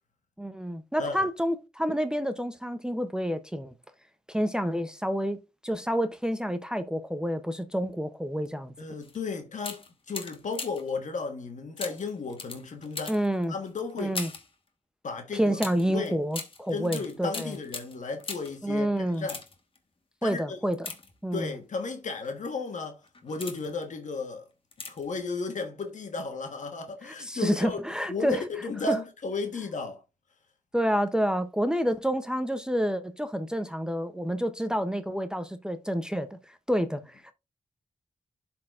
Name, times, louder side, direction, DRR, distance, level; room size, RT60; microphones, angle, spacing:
voice 1, 0.4-3.7 4.3-5.4 5.6-8.7 13.1-13.5 14.0-14.3 15.3-17.6 18.6-19.3 20.2-20.8 21.2-21.5 27.1-28.4 28.9-29.0 30.7-37.3, equal, 5° right, 0.6 m, -29 dB
voice 2, 8.8-13.2 13.5-14.2 15.0-15.6 15.9-16.2 16.7-19.4 20.2-20.6 21.3-24.5 24.9-27.8 28.1-30.0, left 4 dB, 70° left, 1.2 m, -34 dB
sound 1, 9.0-9.2 9.6-11.0 11.8-14.5 15.6-18.6 19.1-19.8 20.7-21.6 22.2-22.5 23.0-23.8 24.7-25.2 25.4-25.5, left 4 dB, 45° left, 1.3 m, -40 dB
12.0 x 4.3 x 2.4 m
wide cardioid pair, 95°, 13 cm